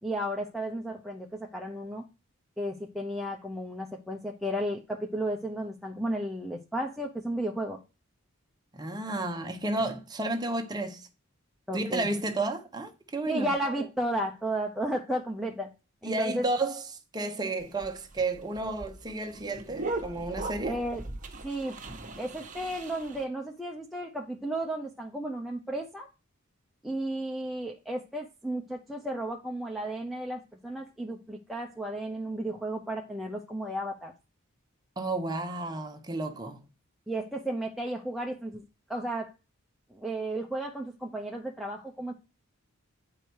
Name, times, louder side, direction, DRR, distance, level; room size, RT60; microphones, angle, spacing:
voice 1, 0.0-2.0 2.6-7.8 11.7-12.1 13.3-15.7 16.0-16.4 20.7-21.1 21.4-21.8 22.2-26.1 26.8-34.1 37.1-38.6 38.9-39.3 39.9-42.1, right 1 dB, ahead, 0.6 m, -33 dB
voice 2, 8.7-11.1 11.7-13.5 16.0-16.8 17.1-20.8 35.0-36.6, right 2 dB, 20° right, 0.9 m, -32 dB
sound 1, 17.6-23.2, right 2 dB, 35° right, 1.2 m, -39 dB
9.1 x 4.9 x 4.6 m
head